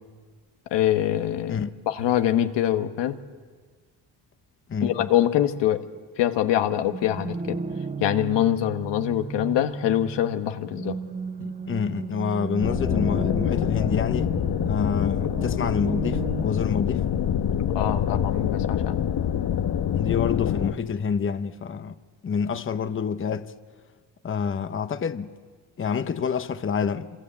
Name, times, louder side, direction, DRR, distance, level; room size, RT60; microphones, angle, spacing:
voice 1, 0.7-3.2 4.8-5.8 6.2-7.6 8.0-11.0 17.7-19.0, left 11 dB, 85° left, 1.4 m, -24 dB
voice 2, 4.7-5.1 11.4-14.4 14.7-17.0 19.9-21.9 22.2-23.5 24.2-25.3 25.8-27.1, left 6 dB, 30° left, 1.0 m, -27 dB
sound 1, 6.7-16.5, right 5 dB, 20° right, 1.1 m, -34 dB
sound 2, 12.6-20.7, left 9 dB, 60° left, 1.2 m, -25 dB
26.5 x 26.0 x 8.5 m
cardioid pair, 110°, 41 cm